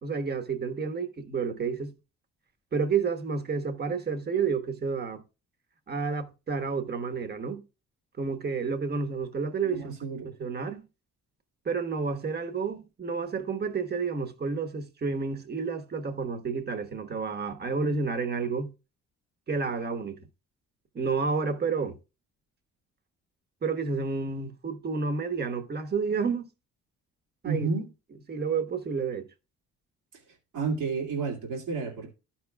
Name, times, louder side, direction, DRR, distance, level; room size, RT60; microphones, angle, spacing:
voice 1, 0.0-1.9 2.7-5.2 5.9-7.6 8.2-9.8 10.4-10.9 11.6-18.7 19.5-20.2 20.9-22.0 23.6-26.5 27.4-27.7 28.3-29.3, right 5 dB, 35° right, 1.2 m, -30 dB
voice 2, 9.6-10.3 27.4-27.9 30.1-30.2 30.5-32.1, right 4 dB, 80° right, 2.4 m, -31 dB
12.5 x 5.9 x 2.3 m
cardioid pair, 90°, 30 cm